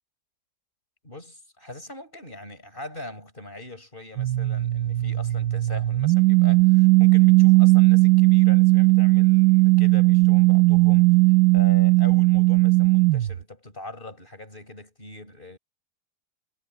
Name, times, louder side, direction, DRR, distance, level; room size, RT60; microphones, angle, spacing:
voice 1, 1.0-11.2 11.5-15.6, left 1 dB, 30° left, 7.3 m, -41 dB
sound 1, 4.2-13.4, right 22 dB, 70° right, 1.1 m, -17 dB
omnidirectional pair, 1.7 m